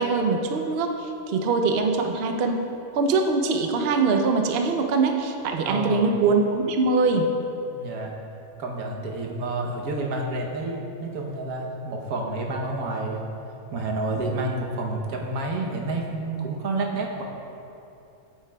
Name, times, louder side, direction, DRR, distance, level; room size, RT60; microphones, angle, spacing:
voice 1, 0.0-2.7 2.9-7.3, right 4 dB, 60° right, 4 dB, 0.6 m, -23 dB
voice 2, 5.6-6.0 7.8-8.1 8.6-13.2 13.7-17.2, right 2 dB, 90° right, 0 dB, 1.4 m, -29 dB
8.9 x 8.1 x 2.2 m, 2.8 s
omnidirectional pair, 1.5 m